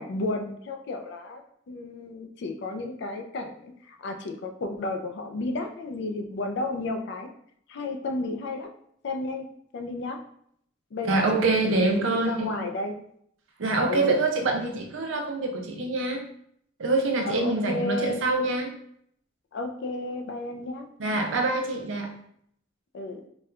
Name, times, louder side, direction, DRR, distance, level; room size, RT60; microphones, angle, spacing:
voice 1, 0.0-7.3 7.7-8.7 9.0-9.5 9.7-10.2 10.9-13.0 13.9-14.2 17.2-18.2 19.5-20.9 22.9-23.2, left 2 dB, 60° left, 5 dB, 0.4 m, -32 dB
voice 2, 11.0-12.6 13.6-16.2 16.8-18.7 21.0-22.1, right 3 dB, 75° right, 3 dB, 0.6 m, -25 dB
4.2 x 2.2 x 2.4 m, 0.68 s
head